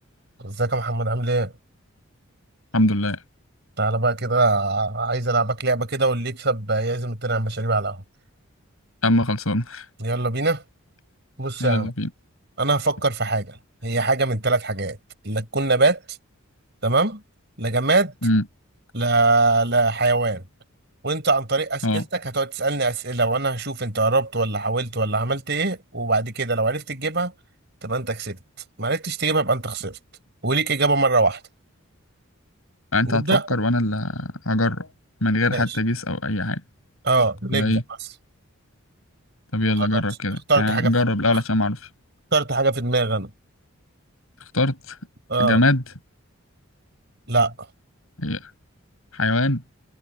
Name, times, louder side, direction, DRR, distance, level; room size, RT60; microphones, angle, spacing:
voice 1, 0.4-1.5 3.8-8.0 10.0-10.6 11.4-11.9 12.6-13.6 13.8-15.0 15.2-16.0 16.8-17.2 17.6-18.1 18.9-20.4 21.0-27.3 27.8-28.4 28.8-30.0 30.4-31.4 33.1-33.5 35.5-35.6 37.0-37.8 39.8-40.0 40.5-40.9 42.3-43.3 45.3-45.6 47.3-47.5, right 3 dB, 50° right, 5.4 m, -22 dB
voice 2, 2.7-3.2 9.0-9.8 11.6-12.1 18.2-18.4 21.8-22.0 32.9-34.9 35.2-36.6 37.5-37.8 39.5-41.8 44.5-45.0 45.4-45.8 48.2-48.4 49.1-49.6, left 1 dB, 75° left, 5.9 m, -22 dB
head